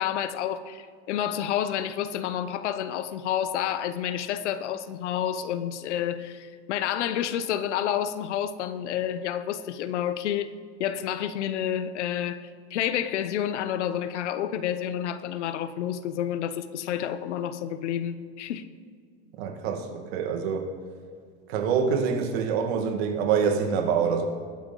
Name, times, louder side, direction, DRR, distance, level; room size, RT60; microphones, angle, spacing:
voice 1, 0.0-10.5 10.8-18.7, left 10 dB, 85° left, 0.9 m, -29 dB
voice 2, 19.4-20.8 21.5-24.3, right 6 dB, 65° right, 1.9 m, -26 dB
20.0 x 8.6 x 3.9 m
supercardioid pair, 145°, 34 cm